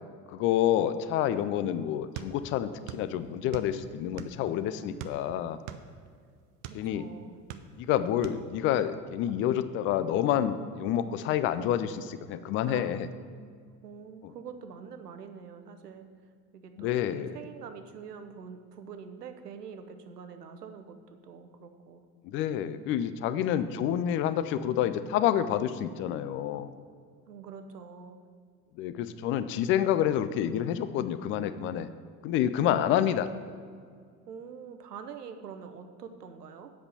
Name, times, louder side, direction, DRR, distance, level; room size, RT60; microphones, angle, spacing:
voice 1, 0.3-5.6 6.7-7.1 7.8-13.1 16.8-17.4 22.2-26.7 28.8-31.9 32.2-33.3, left 10 dB, 30° left, 13 dB, 0.4 m, -28 dB
sound 1, 2.1-3.1 3.3-4.5 5.0-6.9 7.3-7.9 8.2-8.4, right 10 dB, 45° right, 0.6 m, -41 dB
voice 2, 4.4-5.1 6.7-7.4 12.7-16.1 16.5-22.0 23.7-24.0 27.3-28.2 32.6-33.3 34.3-36.7, right 6 dB, 80° right, 7 dB, 0.8 m, -45 dB
7.8 x 5.6 x 6.8 m, 2.1 s
figure-of-eight pair, 70°, 47 cm